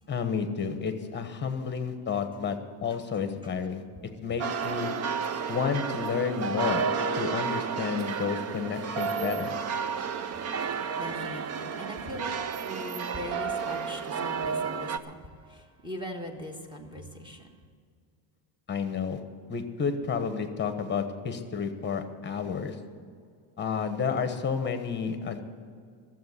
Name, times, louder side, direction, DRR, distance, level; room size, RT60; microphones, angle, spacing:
voice 1, 0.1-3.8 4.2-4.9 5.5-6.8 7.2-9.5 18.7-19.2 19.5-22.8 23.6-25.4, left 6 dB, 20° left, 8 dB, 1.2 m, -31 dB
voice 2, 2.9-3.5 10.0-17.5, equal, 10° right, 4 dB, 1.5 m, -41 dB
sound 1, 4.4-15.0, right 6 dB, 30° right, 0.6 m, -31 dB
13.5 x 7.7 x 9.7 m, 2.2 s
cardioid pair, 140°, 49 cm